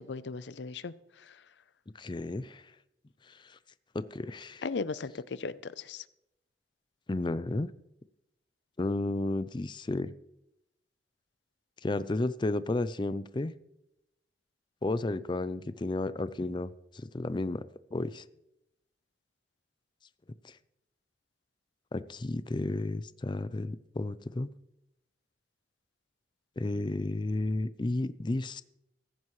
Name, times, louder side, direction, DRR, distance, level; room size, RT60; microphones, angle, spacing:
voice 1, 0.0-1.4 4.6-6.0, left 4 dB, 90° left, 16 dB, 0.5 m, -37 dB
voice 2, 2.0-2.6 3.3-3.6 3.9-4.6 7.1-7.7 8.8-10.1 11.8-13.5 14.8-17.6 17.9-18.2 20.4-20.5 21.9-24.5 26.6-28.6, left 2 dB, 25° left, 15 dB, 0.4 m, -32 dB
15.5 x 14.0 x 3.2 m, 0.86 s
head